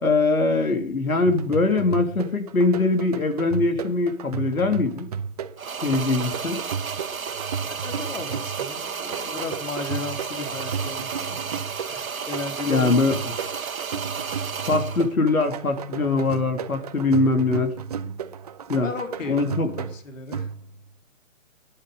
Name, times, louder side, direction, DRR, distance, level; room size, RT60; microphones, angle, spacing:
voice 1, 0.0-5.1 5.8-6.6 12.7-13.2 14.7-17.7 18.7-18.9 19.3-19.7, left 3 dB, 90° left, 5 dB, 3.1 m, -22 dB
sound 1, 1.2-20.9, right 7 dB, 30° right, 0.9 m, -34 dB
sound 2, 5.6-15.1, right 6 dB, 80° right, 1.9 m, -33 dB
voice 2, 7.7-13.2 18.8-20.5, left 3 dB, 65° left, 6 dB, 3.3 m, -35 dB
16.0 x 11.0 x 5.1 m, 0.43 s
hypercardioid pair, 155°, 41 cm